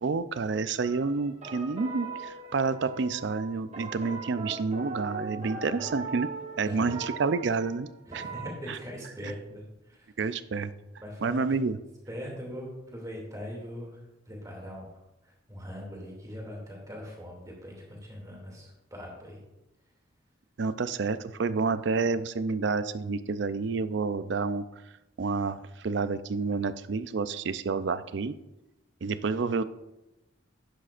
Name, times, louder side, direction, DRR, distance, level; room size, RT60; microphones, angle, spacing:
voice 1, 0.0-6.3 6.6-7.9 8.1-8.3 8.7-8.8 9.2-9.3 10.2-10.7 11.2-11.8 20.6-24.6 25.2-28.3 29.0-29.6, right 4 dB, 60° right, 13 dB, 0.4 m, -29 dB
sound 1, 0.8-8.5, right 4 dB, 35° right, 1.1 m, -40 dB
voice 2, 8.1-10.1 11.0-11.5 12.1-13.9 14.3-14.9 15.5-19.4, equal, 15° right, -1 dB, 2.5 m, -41 dB
11.5 x 10.0 x 2.5 m, 0.96 s
head